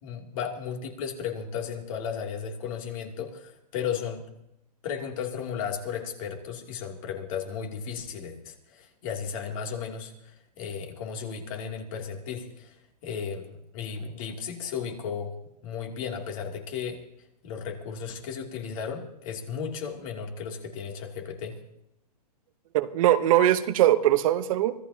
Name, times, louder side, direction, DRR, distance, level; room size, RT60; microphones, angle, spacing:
voice 1, 0.0-4.2 4.8-15.3 15.6-17.0 17.4-21.5, left 7 dB, 50° left, 2 dB, 2.8 m, -35 dB
voice 2, 22.7-24.7, right 13 dB, 55° right, 10 dB, 1.0 m, -21 dB
25.0 x 15.5 x 2.9 m, 0.83 s
hypercardioid pair, 125°, 21 cm